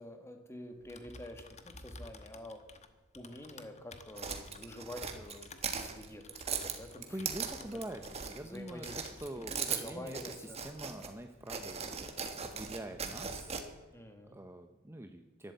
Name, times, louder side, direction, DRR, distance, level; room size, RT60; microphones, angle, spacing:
voice 1, 0.0-2.6 3.1-7.2 7.7-7.8 8.4-9.0 9.3-10.6 13.9-14.4, left 1 dB, 15° left, 5 dB, 1.8 m, -48 dB
Typing, 0.7-8.4 8.7-9.5, left 3 dB, 35° left, 1.2 m, -54 dB
sound 1, 4.2-8.6 8.8-11.1 11.5-13.6, right 6 dB, 30° right, 1.5 m, -39 dB
voice 2, 7.1-13.6 14.3-15.5, right 1 dB, 15° right, 6 dB, 0.7 m, -45 dB
12.0 x 11.5 x 8.3 m, 1.2 s
head